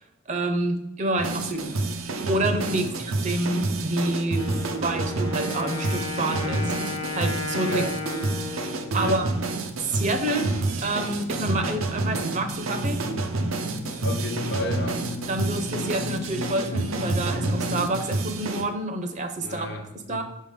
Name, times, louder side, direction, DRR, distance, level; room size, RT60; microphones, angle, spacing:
voice 1, 0.3-1.8 2.3-6.8 7.1-7.9 8.9-9.3 9.8-10.5 10.8-13.0 15.3-19.7 20.1-20.2, right 1 dB, 35° right, 7 dB, 0.6 m, -28 dB
sound 1, 1.2-18.6, right 3 dB, 85° right, 0.7 m, -29 dB
voice 2, 2.7-3.0 7.7-7.9 9.0-9.2 14.0-15.0 19.4-20.2, left 1 dB, 55° left, 5 dB, 0.8 m, -32 dB
Wind instrument woodwind instrument, 4.3-10.0, left 4 dB, 20° left, 0.6 m, -34 dB
sound 2, 8.6-17.9, left 2 dB, 85° left, 1.0 m, -37 dB
6.0 x 3.7 x 5.1 m, 0.93 s
head